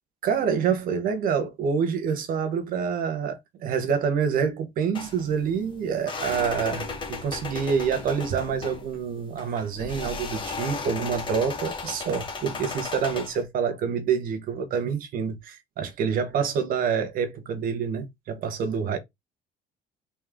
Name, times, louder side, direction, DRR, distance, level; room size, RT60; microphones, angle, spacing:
voice 1, 0.2-19.0, right 6 dB, 50° right, 1.1 m, -27 dB
sound 1, 4.9-13.4, left 4 dB, 25° left, 1.1 m, -35 dB
4.1 x 3.6 x 3.5 m
cardioid pair, 180°, 18 cm